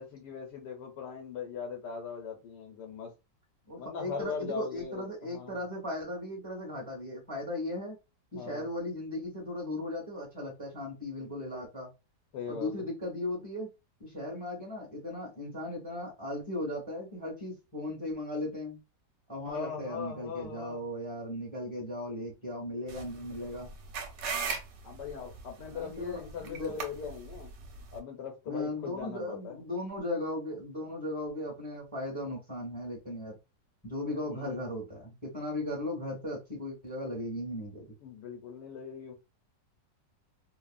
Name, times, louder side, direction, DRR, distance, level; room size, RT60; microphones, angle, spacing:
voice 1, 0.0-3.1 3.8-5.6 8.3-8.7 12.3-12.8 19.4-20.8 24.8-27.5 27.9-29.6 34.0-34.6 38.0-39.1, left 6 dB, 85° left, 1.4 m, -40 dB
voice 2, 3.7-7.9 8.3-11.9 12.5-13.7 14.0-18.8 19.3-23.7 25.7-26.8 28.5-33.4 33.8-37.8, left 1 dB, 10° right, 1.3 m, -37 dB
sound 1, 22.9-28.0, right 5 dB, 85° right, 1.4 m, -39 dB
3.1 x 2.3 x 2.4 m
omnidirectional pair, 1.8 m